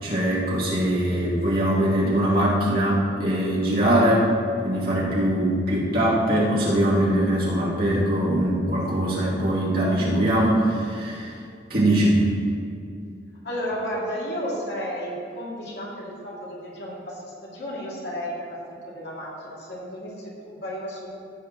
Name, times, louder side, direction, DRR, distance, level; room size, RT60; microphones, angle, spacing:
voice 1, 0.0-4.3 4.6-11.3 11.7-12.3, right 1 dB, 50° right, -7 dB, 2.7 m, -22 dB
voice 2, 13.4-21.1, equal, 65° left, -5 dB, 2.5 m, -33 dB
15.0 x 8.2 x 3.0 m, 2.5 s
head